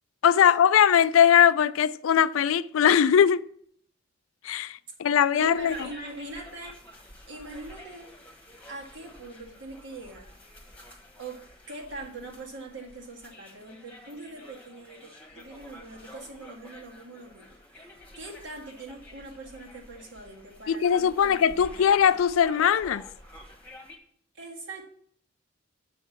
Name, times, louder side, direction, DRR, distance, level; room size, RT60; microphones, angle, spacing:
voice 1, 0.2-3.4 4.4-5.9 20.7-23.0, left 8 dB, 80° left, 0.4 m, -20 dB
voice 2, 5.3-6.8 7.3-8.1 8.6-10.3 11.2-17.9 18.2-22.1 24.3-24.9, right 2 dB, 60° right, 1.8 m, -42 dB
sound 1, 5.4-24.0, left 1 dB, 10° left, 1.4 m, -50 dB
7.3 x 5.8 x 7.1 m
head